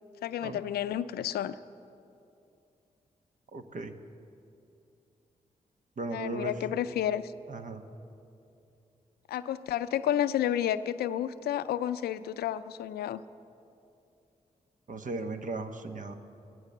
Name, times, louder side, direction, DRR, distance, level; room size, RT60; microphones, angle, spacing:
voice 1, 0.2-1.6 6.1-7.3 9.3-13.2, left 11 dB, 85° left, 14 dB, 0.4 m, -31 dB
voice 2, 3.5-3.9 6.0-6.5 7.5-7.8 14.9-16.1, right 3 dB, 55° right, 7 dB, 1.2 m, -36 dB
16.0 x 13.0 x 6.7 m, 2.7 s
supercardioid pair, 40°, 16 cm